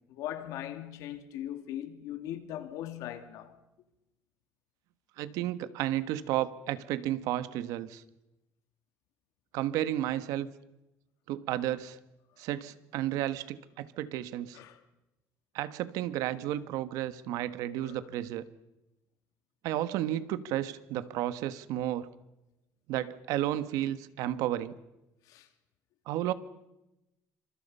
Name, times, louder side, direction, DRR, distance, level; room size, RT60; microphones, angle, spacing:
voice 1, 0.1-3.6 14.5-14.8 17.8-18.0 25.3-25.5, left 11 dB, 80° left, 2.6 m, -40 dB
voice 2, 5.2-8.0 9.5-10.5 11.3-12.0 12.4-14.6 15.5-18.4 19.6-22.1 22.9-24.7 26.1-26.3, right 13 dB, 90° right, 1.4 m, -32 dB
28.0 x 26.0 x 5.6 m
cardioid pair, 140°, 6 cm